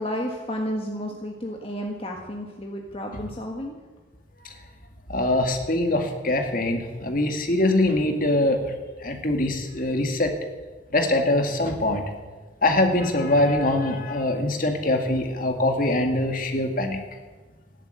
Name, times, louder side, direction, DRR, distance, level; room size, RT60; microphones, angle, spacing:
voice 1, 0.0-3.8, equal, 30° left, 1 dB, 1.5 m, -32 dB
voice 2, 5.1-8.7 9.0-10.3 10.9-12.0 12.6-17.0, left 1 dB, 50° left, 4 dB, 2.1 m, -23 dB
15.5 x 11.5 x 8.2 m, 1.3 s
head